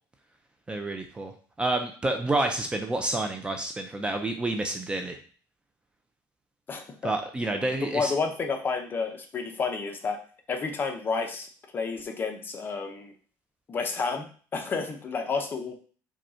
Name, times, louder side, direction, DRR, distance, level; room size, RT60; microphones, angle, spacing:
voice 1, 0.7-1.3 1.6-5.2 7.0-8.1, right 2 dB, 15° right, 5 dB, 0.5 m, -29 dB
voice 2, 6.7-7.1 7.8-10.2 10.5-11.5 11.7-13.1 13.7-15.7, left 4 dB, 30° left, 4 dB, 0.8 m, -30 dB
5.1 x 2.4 x 4.3 m, 0.42 s
cardioid pair, 130°, 7 cm